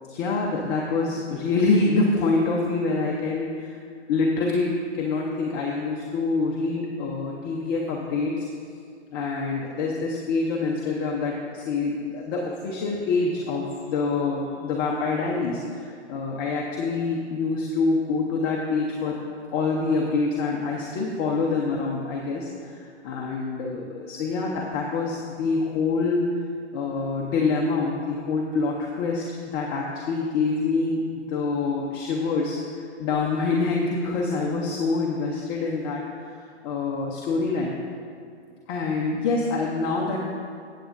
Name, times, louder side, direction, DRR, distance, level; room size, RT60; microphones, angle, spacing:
voice 1, 0.1-3.8 4.1-8.5 9.1-19.2 19.5-26.3 26.7-29.2 29.5-36.0 36.6-37.8 38.7-40.2, left 3 dB, 20° left, -2 dB, 0.6 m, -26 dB
15.0 x 8.2 x 2.5 m, 2.3 s
hypercardioid pair, 135°, 36 cm